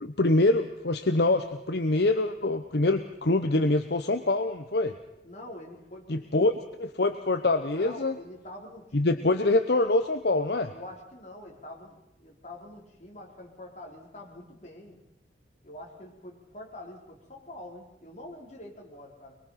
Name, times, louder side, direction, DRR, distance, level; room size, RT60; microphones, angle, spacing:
voice 1, 0.0-4.9 6.1-6.5 6.8-8.1 8.9-10.7, left 2 dB, 65° left, 8 dB, 0.9 m, -25 dB
voice 2, 5.2-6.5 7.7-9.3 10.7-15.0 15.6-19.3, left 1 dB, 40° left, -1 dB, 4.5 m, -45 dB
23.5 x 22.5 x 5.8 m, 0.91 s
head